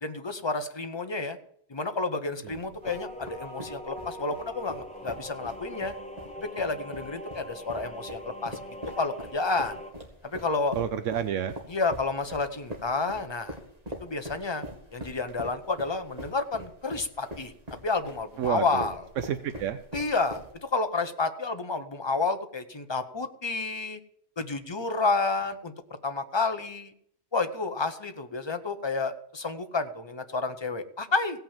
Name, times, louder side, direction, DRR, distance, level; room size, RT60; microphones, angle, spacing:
voice 1, 0.0-1.4 1.7-5.9 6.4-8.6 8.9-9.8 10.2-10.8 11.7-13.6 14.0-14.6 14.9-17.5 17.8-18.9 19.9-24.0 24.4-25.7 26.0-26.9 27.3-31.4, left 3 dB, 25° left, 8 dB, 0.8 m, -30 dB
sound 1, 2.5-20.8, equal, 30° right, 2.0 m, -42 dB
sound 2, 2.8-9.9, equal, 5° left, 1.0 m, -42 dB
voice 2, 10.7-11.6 18.4-18.9 19.2-19.8, right 9 dB, 80° right, 11 dB, 1.0 m, -30 dB
16.5 x 5.8 x 7.2 m, 0.68 s
omnidirectional pair, 1.3 m